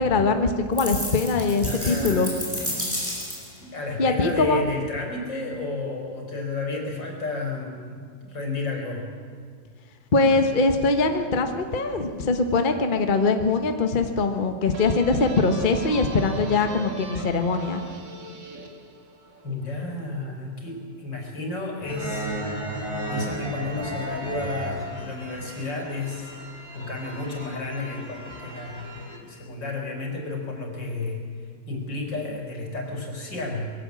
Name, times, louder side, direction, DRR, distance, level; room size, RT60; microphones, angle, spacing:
voice 1, 0.0-2.3 4.0-4.6 10.1-17.8, left 3 dB, 30° left, 6 dB, 1.3 m, -22 dB
sound 1, 0.8-3.6, equal, 5° right, 5.6 m, -31 dB
voice 2, 1.6-2.9 3.6-9.1 19.4-22.3 23.0-26.3 26.7-33.7, left 3 dB, 85° left, 1 dB, 4.9 m, -32 dB
sound 2, 14.7-20.2, right 3 dB, 75° right, 2.9 m, -40 dB
sound 3, 21.8-29.2, right 1 dB, 15° left, 4.1 m, -34 dB
21.5 x 16.5 x 8.5 m, 2.1 s
omnidirectional pair, 1.9 m